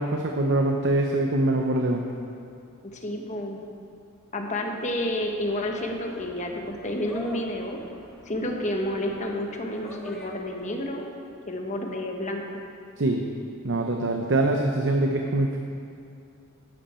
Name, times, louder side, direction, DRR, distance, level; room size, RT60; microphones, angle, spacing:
voice 1, 0.0-2.0 13.0-13.2 13.6-15.6, right 2 dB, 60° right, 2 dB, 0.7 m, -24 dB
voice 2, 2.8-3.6 4.3-7.8 8.3-11.1 11.5-12.6, left 1 dB, 35° left, 2 dB, 1.2 m, -30 dB
sound 1, 4.5-10.8, left 1 dB, 5° left, 1.4 m, -46 dB
12.0 x 11.0 x 4.4 m, 2.5 s
head